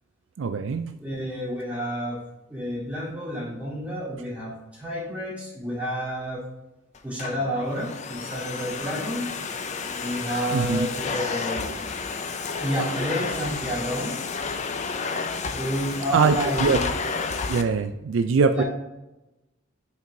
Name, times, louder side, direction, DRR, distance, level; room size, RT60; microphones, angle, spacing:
voice 1, 0.4-0.9 10.5-10.9 16.1-16.8 17.5-18.6, right 5 dB, 65° right, 8 dB, 0.4 m, -22 dB
voice 2, 1.0-6.5 7.0-9.3 10.0-12.0 12.6-14.2 15.5-16.9 18.5-18.6, equal, 5° right, -7 dB, 2.2 m, -30 dB
Domestic sounds home sounds, 6.9-17.6, left 4 dB, 35° left, 0.5 m, -31 dB
5.8 x 4.6 x 3.8 m, 0.99 s
head